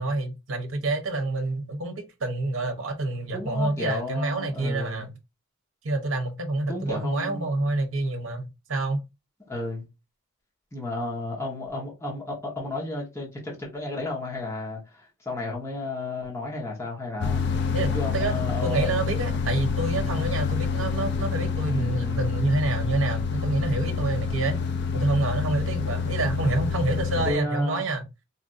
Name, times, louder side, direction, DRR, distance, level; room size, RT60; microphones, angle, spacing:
voice 1, 0.0-5.1 5.8-9.0 17.7-24.6 24.9-28.0, right 2 dB, 65° right, 0.8 m, -27 dB
voice 2, 3.3-5.1 6.7-7.5 9.5-9.9 10.7-17.4 17.9-19.0 21.7-22.3 23.8-24.1 27.2-27.8, left 2 dB, 15° left, 1.0 m, -33 dB
sound 1, 17.2-27.3, left 5 dB, 55° left, 0.4 m, -27 dB
4.3 x 2.5 x 2.5 m
head